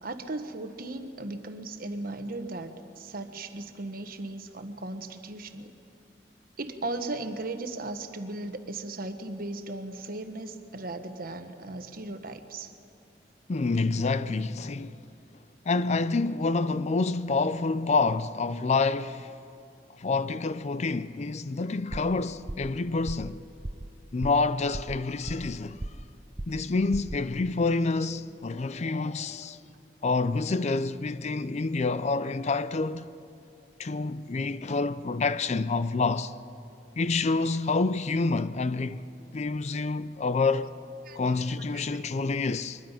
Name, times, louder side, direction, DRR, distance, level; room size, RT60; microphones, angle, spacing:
voice 1, 0.0-5.7 6.6-12.7 41.0-41.5 41.9-42.0, right 2 dB, 55° right, 1.2 m, -37 dB
voice 2, 13.5-15.0 15.7-19.3 20.0-23.4 24.1-25.8 26.5-29.6 30.0-33.1 33.8-36.3 37.0-39.0 39.3-40.7 41.2-42.8, left 3 dB, 40° left, 0.5 m, -27 dB
sound 1, 21.9-22.2 22.5-22.8 23.1-23.3 23.6-23.9 24.2-24.5 24.7-25.5 25.8-26.1 26.4-26.7 26.9-27.2, right 1 dB, 20° right, 0.5 m, -36 dB
23.0 x 21.0 x 5.7 m
head